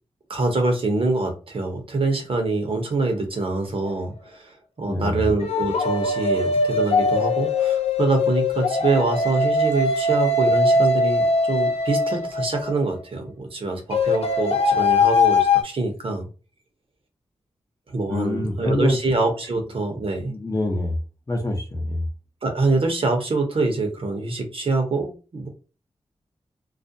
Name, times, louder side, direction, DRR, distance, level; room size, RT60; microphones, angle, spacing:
voice 1, 0.3-16.3 17.9-20.3 22.4-25.5, right 3 dB, 60° right, 3 dB, 0.8 m, -25 dB
sound 1, 3.9-4.0 5.4-12.8 13.9-15.6, left 3 dB, 75° left, 0.5 m, -21 dB
voice 2, 4.9-5.3 18.1-19.0 20.2-21.0 21.3-22.0, left 1 dB, 30° left, 2 dB, 0.7 m, -25 dB
2.4 x 2.1 x 2.6 m, 0.33 s
wide cardioid pair, 75°, 11 cm